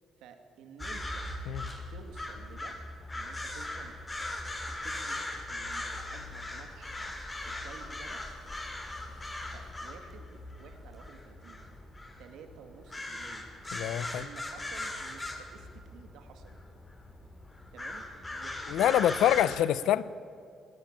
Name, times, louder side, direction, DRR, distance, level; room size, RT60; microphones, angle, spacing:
voice 1, 0.2-1.3 1.9-2.8 3.1-5.2 5.5-7.0 7.4-8.4 9.5-11.8 12.2-13.5 13.9-16.6 17.7-19.0, right 6 dB, 85° right, 7 dB, 2.5 m, -52 dB
sound 1, 0.8-19.5, left 1 dB, 20° left, 4.0 m, -40 dB
Waves surf, 3.1-9.7, left 4 dB, 50° left, 5.2 m, -57 dB
voice 2, 13.7-14.3 18.7-20.0, left 11 dB, 85° left, 18 dB, 0.7 m, -26 dB
19.0 x 19.0 x 9.0 m, 2.4 s
cardioid pair, 90°, 0 cm